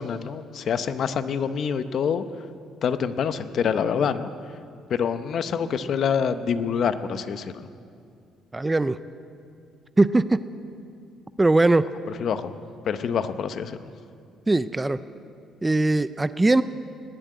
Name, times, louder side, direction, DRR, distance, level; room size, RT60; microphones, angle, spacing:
voice 1, 0.0-2.2 2.8-4.3 4.9-7.7 12.2-12.5 12.9-13.8, left 7 dB, 55° left, 11 dB, 0.7 m, -26 dB
voice 2, 8.5-9.0 10.0-10.4 11.4-11.9 14.5-15.0 15.6-16.6, right 2 dB, 15° right, 15 dB, 0.4 m, -20 dB
19.0 x 7.6 x 9.3 m, 2.4 s
cardioid pair, 120°, 0 cm